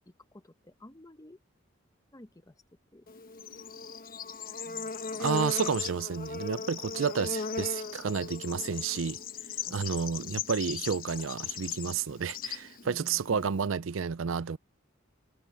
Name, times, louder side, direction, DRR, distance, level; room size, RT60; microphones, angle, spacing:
voice 1, 0.3-1.4 2.1-2.5 2.9-3.0 4.6-4.9 6.8-7.0 9.6-9.8 12.8-13.5, left 1 dB, 20° left, 1.0 m, -51 dB
Bird / Insect, 3.1-13.7, left 5 dB, 45° left, 1.1 m, -38 dB
voice 2, 5.2-9.2 9.7-14.6, right 6 dB, 70° right, 0.5 m, -31 dB
head